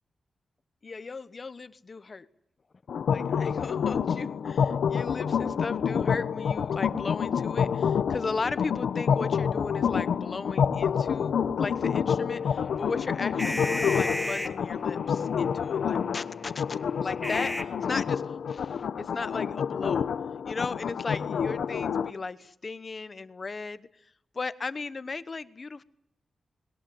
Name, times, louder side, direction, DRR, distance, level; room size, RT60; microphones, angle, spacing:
voice 1, 0.8-2.3 3.1-20.1 20.4-23.9 24.3-25.8, left 4 dB, 35° left, 14 dB, 1.0 m, -36 dB
sound 1, 2.9-22.1, left 7 dB, 85° left, 0.9 m, -28 dB
sound 2, 12.4-18.1, equal, ahead, 1.3 m, -36 dB
28.5 x 21.5 x 7.8 m, 0.77 s
wide cardioid pair, 170°, 0 cm